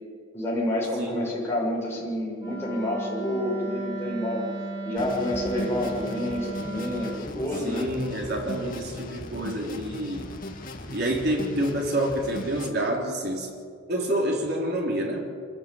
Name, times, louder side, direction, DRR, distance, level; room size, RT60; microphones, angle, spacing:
voice 1, 0.3-4.5 4.8-7.9, left 1 dB, 10° left, -5 dB, 7.3 m, -29 dB
voice 2, 1.0-1.3 7.6-10.3 10.9-13.5 13.9-15.3, right 1 dB, 50° right, 0 dB, 4.0 m, -28 dB
Wind instrument woodwind instrument, 2.4-7.3, right 2 dB, 20° right, 5.3 m, -35 dB
sound 1, 5.0-12.7, left 1 dB, 45° left, 1.8 m, -38 dB
25.5 x 14.5 x 9.1 m, 2.2 s
head